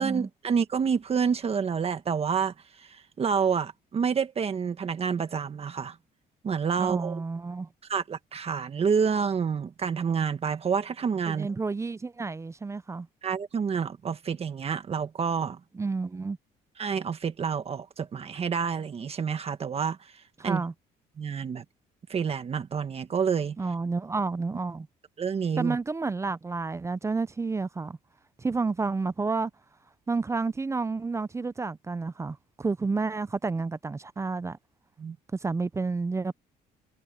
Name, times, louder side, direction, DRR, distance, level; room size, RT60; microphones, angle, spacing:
voice 1, 0.0-6.0 6.4-7.2 7.9-11.5 13.2-15.6 16.8-20.1 20.4-20.6 21.2-21.6 22.1-23.6 25.2-25.8 35.0-35.2, right 6 dB, 35° right, 1.5 m, -28 dB
voice 2, 6.8-7.7 11.3-13.1 15.7-16.4 20.4-20.7 23.6-24.9 25.6-28.0 28.4-29.5 30.1-34.6 35.4-36.3, right 4 dB, 15° right, 0.5 m, -30 dB
cardioid pair, 110°, 17 cm